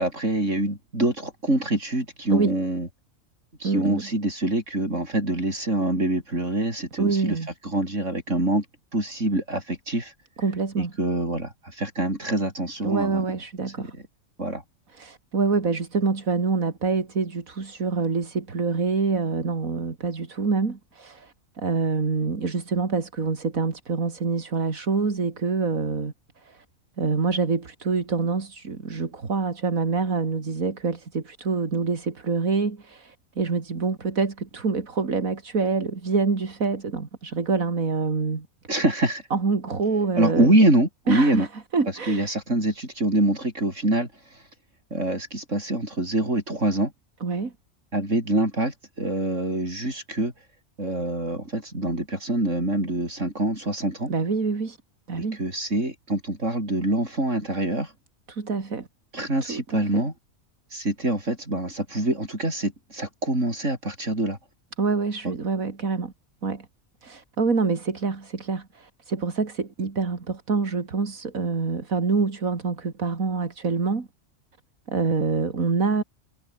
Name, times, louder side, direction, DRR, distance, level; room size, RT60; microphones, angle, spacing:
voice 1, 0.0-2.9 3.6-7.4 7.6-8.6 8.9-10.1 10.8-13.2 14.4-14.6 38.7-39.2 40.2-41.5 42.1-44.1 44.9-46.9 47.9-50.3 50.8-54.1 55.1-57.9 59.1-60.1 60.7-64.4 65.2-65.3, right 1 dB, 60° right, 8.5 m, -25 dB
voice 2, 3.6-4.1 7.0-7.5 10.4-10.9 12.8-13.9 14.9-26.1 26.4-26.6 27.0-38.5 39.3-40.5 41.1-41.5 41.7-42.3 47.2-47.5 54.1-54.8 55.1-55.4 58.3-58.9 59.4-60.0 64.8-66.1 66.4-66.7 67.0-74.1 74.9-76.0, right 4 dB, 80° right, 3.0 m, -26 dB
omnidirectional pair, 1.4 m